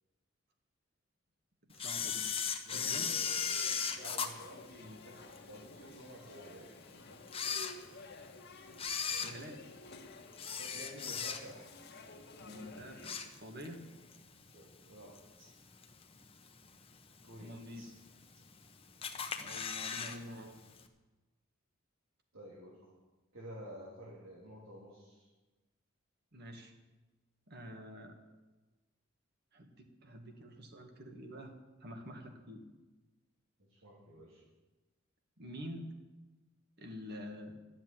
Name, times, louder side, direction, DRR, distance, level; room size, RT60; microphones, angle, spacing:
voice 1, 1.6-2.3 2.7-3.2 9.2-9.6 12.4-13.8 17.4-17.9 19.3-20.6 26.3-26.7 27.5-28.2 29.5-31.5 31.8-32.6 35.4-35.9 36.8-37.6, equal, 50° right, 4 dB, 1.9 m, -47 dB
Camera, 1.8-5.4 5.9-6.0 6.7-6.8 7.2-8.2 8.7-11.7 12.1-12.4 12.7-13.8 14.1-14.2 15.2-15.3 15.8-16.2 16.7-16.8 16.9-17.0 17.2-17.3 18.1-18.6 19.0-20.2 20.4-20.5 20.8-20.9, left 6 dB, 30° left, 1.0 m, -37 dB
voice 2, 2.6-7.2 10.6-11.6 14.4-15.5 17.2-17.9 22.3-22.9 23.3-25.3 33.6-34.4, equal, 85° right, -5 dB, 3.2 m, -52 dB
sound 1, 2.8-13.1, left 3 dB, 55° left, 1.4 m, -54 dB
13.0 x 7.6 x 9.1 m, 1.2 s
head